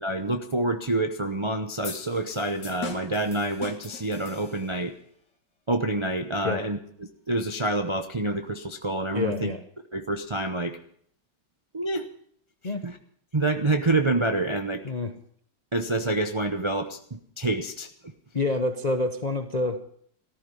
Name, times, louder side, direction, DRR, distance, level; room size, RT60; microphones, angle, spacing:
voice 1, 0.0-4.9 5.7-9.5 9.9-10.8 11.7-12.1 12.8-13.0 13.3-14.8 15.7-17.9, right 2 dB, 45° right, 6 dB, 0.3 m, -27 dB
sound 1, 1.8-4.9, left 3 dB, 70° left, 2.6 m, -40 dB
voice 2, 9.1-9.6 12.6-12.8 14.8-15.2 18.3-19.8, left 2 dB, 45° left, 7 dB, 0.5 m, -27 dB
14.5 x 14.0 x 5.4 m, 0.63 s
omnidirectional pair, 2.0 m